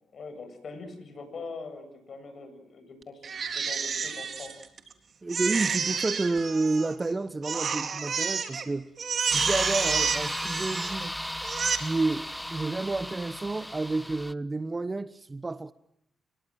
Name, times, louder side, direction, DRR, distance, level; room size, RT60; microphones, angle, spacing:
voice 1, 0.1-4.6, left 3 dB, 60° left, 7.7 m, -42 dB
Crying sobbing, 3.2-4.9 5.3-7.1 7.4-8.7 9.0-11.1 11.4-11.8, right 6 dB, 60° right, 3.5 m, -30 dB
voice 2, 5.2-8.9 9.3-11.1 11.8-15.7, right 3 dB, 30° right, 1.1 m, -30 dB
sound 1, 9.3-14.3, left 1 dB, 5° left, 1.1 m, -35 dB
29.5 x 23.0 x 7.6 m
hypercardioid pair, 45°, 0 cm